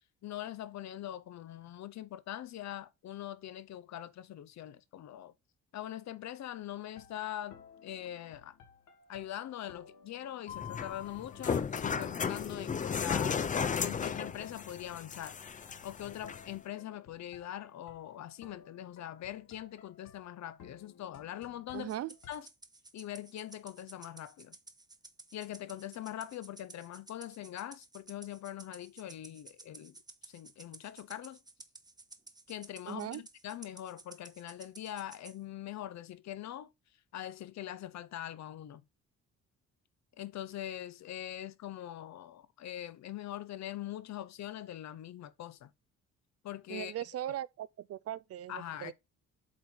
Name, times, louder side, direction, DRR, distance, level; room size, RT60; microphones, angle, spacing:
voice 1, 0.2-5.3 5.7-8.6 9.1-15.4 15.8-21.9 22.3-22.5 22.9-24.6 25.3-30.0 30.3-31.4 32.5-36.7 37.1-38.8 40.2-45.7 46.4-46.9 48.5-48.9, left 12 dB, 65° left, 0.7 m, -42 dB
sound 1, 6.8-22.4, left 6 dB, 80° left, 1.8 m, -58 dB
sound 2, 10.5-16.5, left 6 dB, 25° left, 0.5 m, -35 dB
voice 2, 21.7-22.2 32.9-33.2 46.7-48.9, right 12 dB, 55° right, 0.4 m, -39 dB
Rattle (instrument), 21.9-35.4, right 3 dB, 15° right, 0.7 m, -54 dB
7.7 x 3.7 x 4.4 m
cardioid pair, 90°, 30 cm